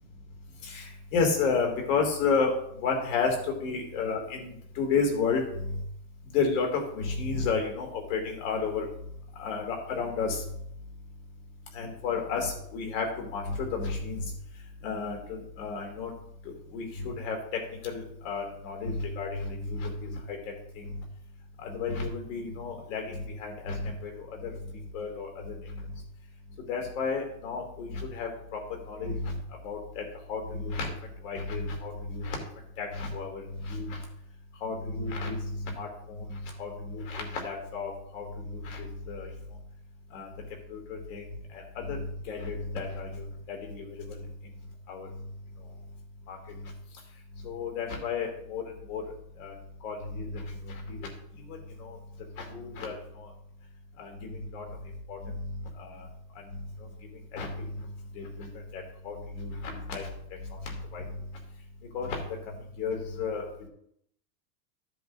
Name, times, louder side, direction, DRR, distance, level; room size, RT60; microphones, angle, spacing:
voice 1, 0.6-2.5 2.8-3.3 3.6-5.8 6.3-8.9 9.4-10.4 11.7-14.3 14.8-16.1 16.4-17.4 17.8-20.4 20.8-21.0 21.6-24.5 24.9-25.8 26.7-28.6 28.9-30.0 30.3-30.9 31.2-32.4 32.8-34.0 34.6-39.3 40.1-40.3 40.7-41.2 41.5-44.2 44.9-45.1 46.3-46.4 47.4-48.6 48.9-49.0 49.4-49.5 49.8-51.1 51.5-52.0 52.4-53.3 54.0-54.6 55.1-56.1 56.5-56.7 57.3-57.7 58.1-60.1 60.5-61.1 61.9-62.2 62.8-63.5, left 4 dB, 60° left, 2 dB, 2.5 m, -32 dB
14.0 x 7.7 x 2.6 m, 0.72 s
supercardioid pair, 175°, 44 cm